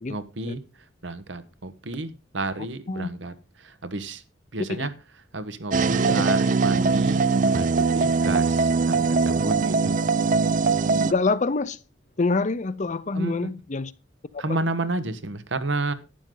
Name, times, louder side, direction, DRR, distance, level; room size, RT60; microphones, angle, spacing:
voice 1, 0.1-0.6 1.0-4.2 4.5-4.9 5.3-9.9 13.1-13.5 14.4-15.9, right 2 dB, 85° right, 1.2 m, -31 dB
sound 1, 5.7-11.1, right 4 dB, 45° right, 0.5 m, -21 dB
voice 2, 11.0-11.8 12.2-13.9, left 3 dB, 40° left, 0.6 m, -26 dB
11.5 x 9.4 x 3.9 m
head